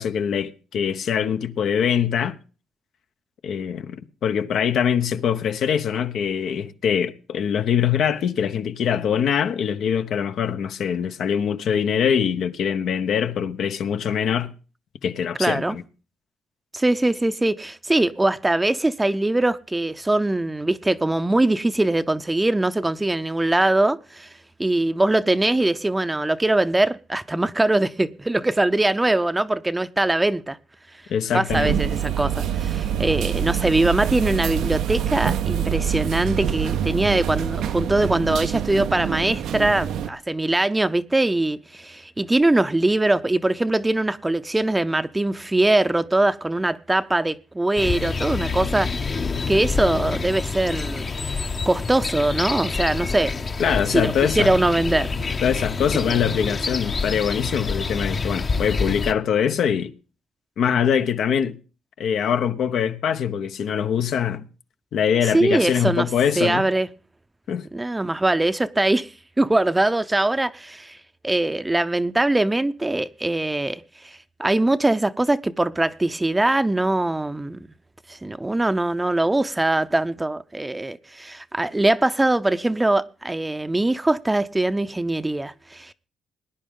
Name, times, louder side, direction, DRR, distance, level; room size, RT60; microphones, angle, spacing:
voice 1, 0.0-2.3 3.4-14.5 15.0-15.8 31.1-31.8 53.6-54.5 55.4-59.9 60.6-61.6 62.0-64.5 64.9-66.6 67.5-67.7, left 8 dB, 70° left, 0.9 m, -23 dB
voice 2, 15.4-15.8 16.7-24.3 24.6-30.6 31.3-49.2 49.5-53.3 53.7-55.1 55.9-56.2 65.3-66.1 66.4-66.9 67.7-69.1 69.4-71.0 71.2-77.6 78.1-85.9, right 2 dB, 15° right, 0.6 m, -22 dB
sound 1, 31.5-40.1, right 9 dB, 75° right, 0.6 m, -25 dB
sound 2, 47.8-59.1, left 4 dB, 35° left, 0.9 m, -27 dB
19.0 x 10.0 x 3.7 m
cardioid pair, 90°, 0 cm